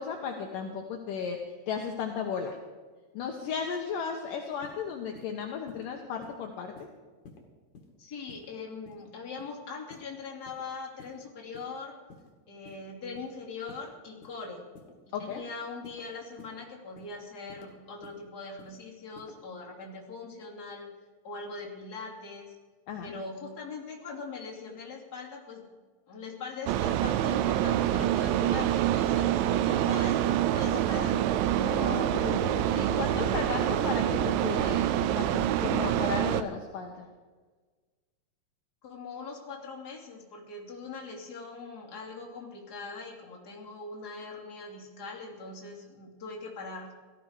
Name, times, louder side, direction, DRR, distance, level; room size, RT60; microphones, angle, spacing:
voice 1, 0.0-1.4 1.7-2.6 3.1-6.9 15.1-15.4 22.9-23.1 28.5-28.6 31.5-34.9 35.1-37.1, left 6 dB, 75° left, 2 dB, 2.1 m, -35 dB
sound 1, 4.6-4.8 5.1-5.3 5.7-5.9 6.2-6.4 6.8-6.9 7.2-7.4 7.7-7.9 8.3-8.5 8.8-9.0 9.4-9.5 9.9-10.1 10.5-10.6 11.0-11.1 11.5-11.7 12.1-12.3 12.7-12.8 13.1-13.3 13.7-13.9 14.2-14.4 14.8-14.9 15.3-15.5 15.8-16.0 16.4-16.5 17.0-17.1 17.5-17.7 18.0-18.2 18.6-18.8 19.2-19.3, left 5 dB, 50° left, 3.1 m, -51 dB
voice 2, 8.0-12.0 12.5-14.7 15.1-20.9 21.2-22.6 23.0-25.7 26.1-31.2 38.8-46.9, left 4 dB, 25° left, -2 dB, 2.6 m, -41 dB
sound 2, 26.7-36.4, right 11 dB, 85° right, 3.0 m, -26 dB
17.5 x 14.0 x 4.9 m, 1.4 s
omnidirectional pair, 5.3 m